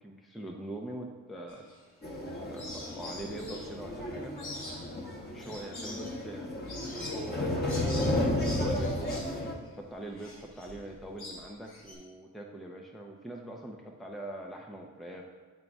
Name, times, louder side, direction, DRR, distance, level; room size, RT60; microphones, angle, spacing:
voice 1, 0.0-1.6 2.2-4.4 5.3-7.8 8.4-9.3 9.8-15.3, right 1 dB, ahead, 0 dB, 0.7 m, -43 dB
sound 1, 1.5-2.2 2.6-11.9, left 1 dB, 70° left, 1.6 m, -45 dB
sound 2, 2.0-9.5, left 1 dB, 25° left, 1.3 m, -33 dB
10.5 x 3.8 x 2.4 m, 1.4 s
supercardioid pair, 40°, 39 cm